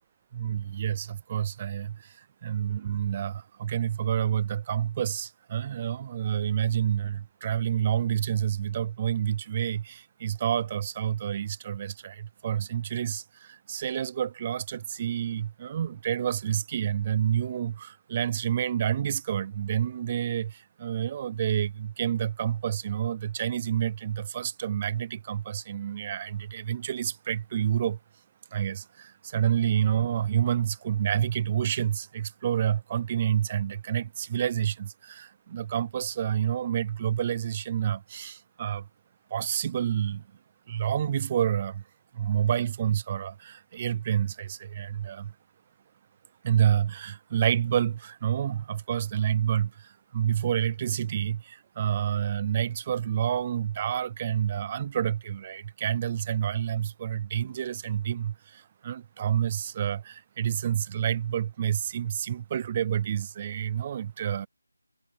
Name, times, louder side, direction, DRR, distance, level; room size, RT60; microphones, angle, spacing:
voice 1, 0.3-2.1 2.4-28.0 28.5-38.9 39.3-40.2 40.7-41.8 42.1-45.3 46.4-64.5, right 9 dB, 15° right, 0.3 m, -28 dB
figure-of-eight pair, 180°, 0 cm